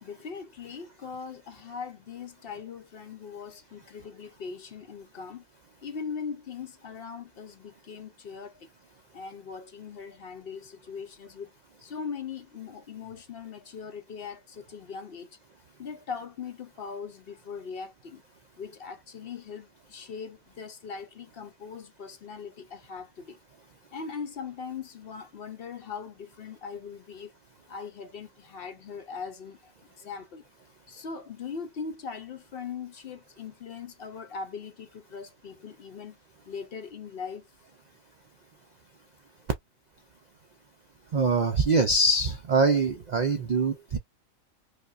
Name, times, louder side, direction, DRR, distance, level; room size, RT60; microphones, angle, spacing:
voice 1, 0.0-5.4 5.8-8.7 9.1-11.5 11.8-15.4 15.8-18.2 18.6-23.4 23.9-27.3 27.7-29.7 30.0-30.4 30.9-36.2 36.5-37.5, left 6 dB, 55° left, 0.7 m, -40 dB
voice 2, 41.1-44.0, right 3 dB, 80° right, 0.3 m, -23 dB
5.0 x 2.2 x 2.4 m
omnidirectional pair, 1.4 m